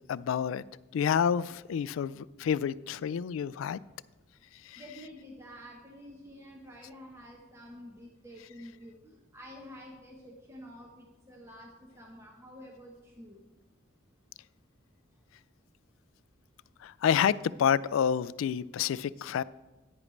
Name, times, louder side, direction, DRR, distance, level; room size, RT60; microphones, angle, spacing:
voice 1, 0.1-0.6 0.9-3.8 4.7-4.8 16.8-19.4, left 8 dB, 85° left, 19 dB, 0.3 m, -28 dB
voice 2, 4.8-13.4, equal, 15° right, 0 dB, 0.9 m, -49 dB
10.0 x 9.8 x 3.2 m, 1.1 s
head